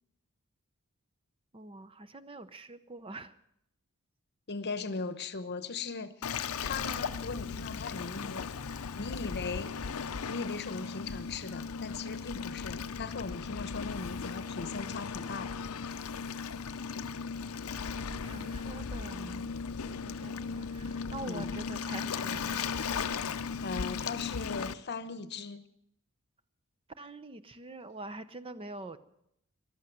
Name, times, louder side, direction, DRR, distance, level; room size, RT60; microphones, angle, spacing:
voice 1, 1.5-3.3 18.1-19.5 19.8-22.7 27.0-29.0, right 2 dB, 25° right, 0.6 m, -45 dB
voice 2, 4.5-8.5 9.0-9.7 10.3-15.6 21.3-21.6 23.6-25.6, left 4 dB, 50° left, 0.9 m, -39 dB
Waves surf, 6.2-24.7, left 5 dB, 70° left, 0.6 m, -37 dB
14.5 x 12.0 x 7.8 m
head